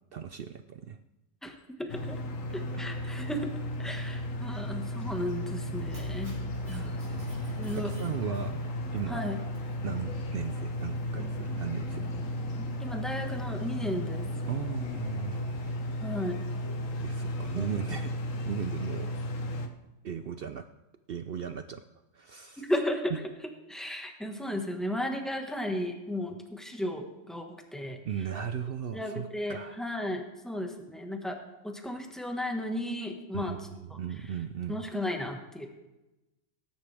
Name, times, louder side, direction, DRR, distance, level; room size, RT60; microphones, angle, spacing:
voice 1, 0.1-1.0 6.6-8.6 8.9-9.2 9.8-12.1 14.5-15.4 17.0-18.1 18.5-19.2 20.0-20.6 21.1-21.8 22.1-22.7 28.0-29.8 33.3-34.8, right 8 dB, 65° right, 9 dB, 0.5 m, -37 dB
voice 2, 1.8-2.2 2.5-3.5 3.8-6.4 6.7-7.0 7.6-7.9 9.1-9.4 12.8-14.2 16.0-16.4 17.5-17.7 22.6-23.2 23.7-28.0 28.9-31.4 31.6-33.6 34.7-35.7, left 1 dB, ahead, 3 dB, 1.3 m, -34 dB
sound 1, 1.9-19.7, left 1 dB, 65° left, 1.3 m, -34 dB
Mechanisms, 4.9-15.7, equal, 25° right, 3.7 m, -50 dB
18.5 x 10.5 x 3.4 m, 1.0 s
omnidirectional pair, 1.5 m